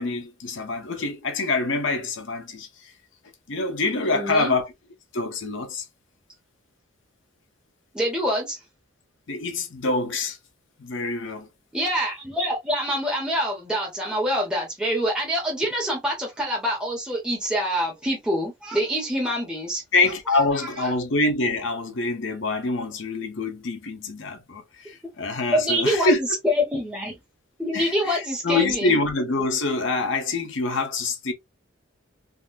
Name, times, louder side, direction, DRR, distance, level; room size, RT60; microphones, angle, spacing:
voice 1, 0.0-2.9 3.5-4.7 5.1-5.8 9.3-10.4 10.8-11.5 19.9-26.2 27.7-31.3, left 3 dB, 65° left, 0.8 m, -25 dB
voice 2, 4.1-4.5 7.9-8.6 11.7-19.8 20.3-20.4 25.5-26.3 26.6-27.2 27.6-29.0, equal, 5° right, 0.8 m, -26 dB
3.7 x 2.0 x 2.5 m
head